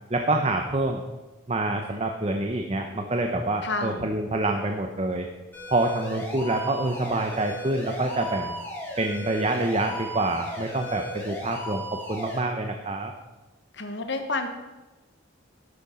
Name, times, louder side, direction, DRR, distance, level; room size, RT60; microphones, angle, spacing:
voice 1, 0.1-1.0 1.5-5.3 5.7-8.5 9.0-13.1, right 2 dB, 30° right, 4 dB, 0.8 m, -26 dB
voice 2, 3.6-4.1 13.7-14.5, left 3 dB, 55° left, 6 dB, 1.1 m, -29 dB
sound 1, 5.5-12.4, equal, 10° left, 3.0 m, -36 dB
12.0 x 8.7 x 5.6 m, 1.2 s
head